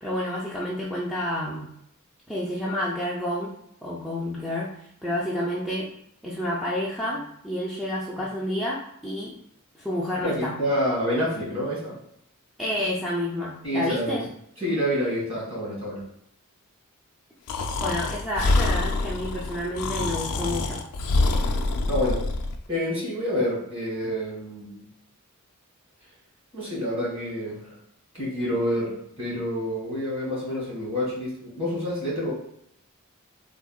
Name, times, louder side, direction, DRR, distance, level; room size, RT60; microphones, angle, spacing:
voice 1, 0.0-1.7 2.3-3.5 3.8-5.9 6.2-9.4 9.7-10.5 12.6-14.2 17.8-20.8, left 1 dB, ahead, -7 dB, 0.3 m, -29 dB
voice 2, 10.2-12.0 13.6-14.3 14.6-16.1 21.9-22.3 22.7-24.9 26.5-27.8 28.1-32.3, equal, 25° right, -6 dB, 1.4 m, -28 dB
Breathing, 17.5-22.6, left 2 dB, 90° left, 0.4 m, -25 dB
3.5 x 2.1 x 2.3 m, 0.72 s
head